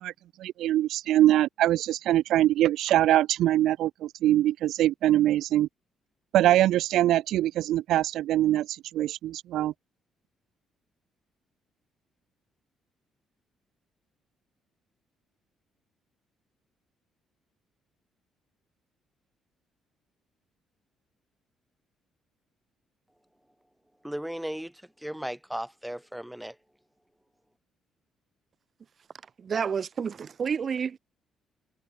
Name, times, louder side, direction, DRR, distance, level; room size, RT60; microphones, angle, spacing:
voice 1, 0.4-5.7 6.3-9.7, right 13 dB, 70° right, 0.7 m, -23 dB
voice 2, 24.0-26.6, equal, 5° right, 2.7 m, -36 dB
voice 3, 29.4-31.0, right 6 dB, 35° right, 1.6 m, -29 dB
cardioid pair, 150°, 0 cm